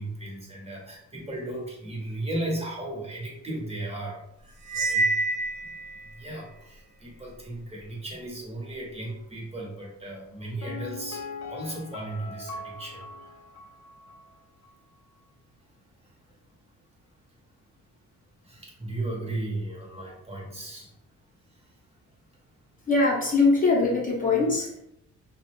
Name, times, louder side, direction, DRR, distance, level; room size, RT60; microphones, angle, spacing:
voice 1, 0.0-5.1 5.6-5.7 6.0-13.3 16.0-16.1 18.4-20.9 21.5-21.7, right 1 dB, 20° right, -3 dB, 0.8 m, -36 dB
Cymbal, 4.7-6.1, right 2 dB, 65° right, 0.8 m, -27 dB
Piano, 10.6-14.4 14.6-14.7, left 3 dB, 70° left, 0.5 m, -41 dB
voice 2, 22.9-24.8, left 3 dB, 25° left, -3 dB, 0.6 m, -22 dB
2.3 x 2.0 x 3.0 m, 0.77 s
cardioid pair, 90°, 30 cm